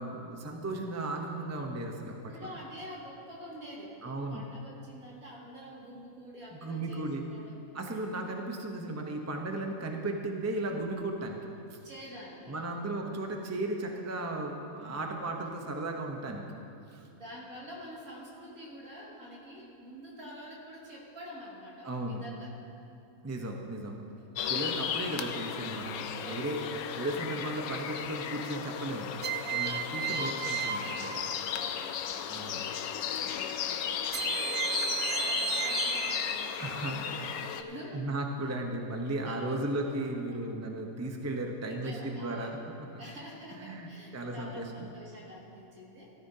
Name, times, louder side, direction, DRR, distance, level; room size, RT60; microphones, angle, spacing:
voice 1, 0.0-2.1 4.0-4.4 6.5-7.2 7.7-11.4 11.7-11.8 12.5-16.4 16.9-17.1 21.8-22.2 23.2-24.0 24.5-26.6 27.0-29.2 29.5-31.2 32.3-32.6 36.6-37.3 37.9-42.5 43.6-43.9 44.1-44.9, right 2 dB, 15° right, 2 dB, 0.7 m, -35 dB
voice 2, 1.9-7.6 11.8-12.8 14.7-15.1 17.1-22.6 24.2-24.9 26.2-27.5 29.2-30.2 30.4-31.0 31.5-32.2 33.1-33.9 34.7-38.1 39.2-39.6 40.3-40.4 41.6-42.6 43.0-46.1, equal, 75° right, -4 dB, 2.7 m, -47 dB
sound 1, 24.4-37.6, left 8 dB, 80° left, 1.0 m, -35 dB
sound 2, 26.1-26.7 29.2-31.9 34.1-36.7, right 8 dB, 90° right, 0.4 m, -34 dB
17.5 x 12.5 x 2.8 m, 2.7 s
omnidirectional pair, 1.5 m